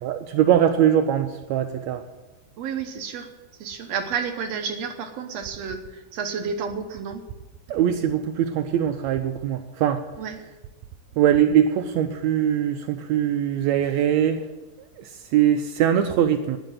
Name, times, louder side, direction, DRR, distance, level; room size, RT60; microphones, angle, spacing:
voice 1, 0.0-2.0 7.7-10.0 11.2-14.4 15.0-16.6, right 10 dB, 90° right, 7 dB, 1.5 m, -22 dB
voice 2, 2.6-3.3 3.6-7.2 10.2-10.4, right 6 dB, 65° right, 5 dB, 1.8 m, -31 dB
12.0 x 10.5 x 7.6 m, 1.1 s
omnidirectional pair, 4.0 m